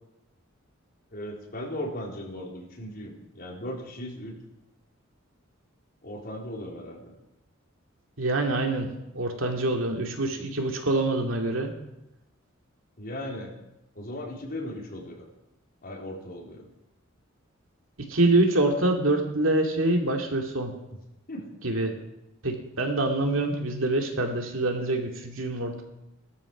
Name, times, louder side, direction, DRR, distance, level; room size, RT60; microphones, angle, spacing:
voice 1, 1.1-4.3 6.0-7.1 13.0-13.5 14.0-15.3 15.8-16.7 21.3-21.5, left 1 dB, 45° left, -1 dB, 4.1 m, -37 dB
voice 2, 8.2-8.9 9.1-11.7 18.1-20.7 21.6-21.9 22.4-25.8, right 2 dB, 70° right, 2 dB, 2.6 m, -25 dB
18.0 x 13.0 x 6.1 m, 0.90 s
head